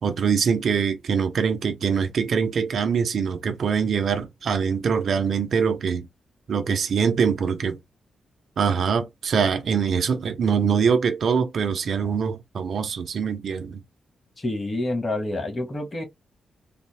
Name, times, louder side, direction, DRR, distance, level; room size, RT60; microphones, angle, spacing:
voice 1, 0.0-6.1 6.5-7.8 8.6-13.8, right 6 dB, 65° right, 1.0 m, -23 dB
voice 2, 14.4-16.0, left 2 dB, 35° left, 1.8 m, -28 dB
4.3 x 2.0 x 3.5 m
supercardioid pair, 50°, 0 cm